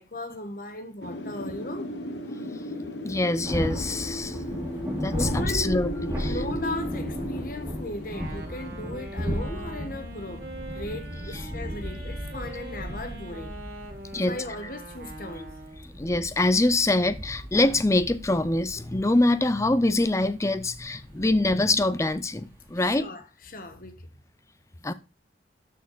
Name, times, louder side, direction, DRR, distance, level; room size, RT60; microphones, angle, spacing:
voice 1, 0.0-1.9 5.1-5.8 6.2-13.6 14.2-15.5 22.7-24.1 24.8-24.9, left 2 dB, 50° left, 1.2 m, -37 dB
Wind, 1.0-9.7, left 1 dB, 80° left, 1.2 m, -36 dB
voice 2, 3.0-4.4 5.0-5.2 5.5-5.9 6.2-6.4 14.1-14.4 16.0-23.0 24.8-24.9, left 2 dB, 15° left, 0.5 m, -24 dB
sound 1, 3.4-23.0, equal, 15° right, 2.6 m, -36 dB
Wind instrument woodwind instrument, 8.0-16.0, right 2 dB, 55° right, 2.0 m, -43 dB
12.5 x 4.6 x 4.0 m
head